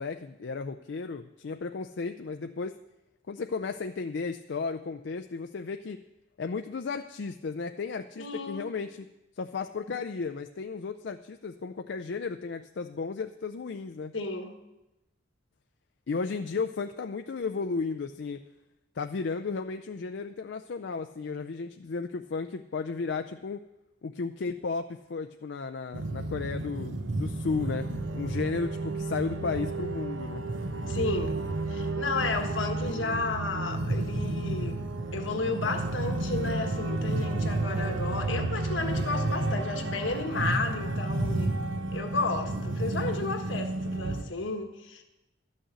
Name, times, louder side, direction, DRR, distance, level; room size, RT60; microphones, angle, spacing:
voice 1, 0.0-2.8 3.3-6.0 6.4-9.1 9.4-14.2 16.1-18.4 19.0-23.6 24.0-27.9 28.1-30.4, left 4 dB, 65° left, 7 dB, 0.4 m, -34 dB
voice 2, 8.2-8.6 14.1-14.6 30.9-31.4 31.7-34.8 35.1-41.6 41.9-45.0, left 3 dB, 80° left, 5 dB, 1.4 m, -32 dB
sound 1, 25.9-44.2, right 2 dB, 85° right, 1.0 m, -31 dB
12.5 x 6.4 x 8.0 m, 0.95 s
head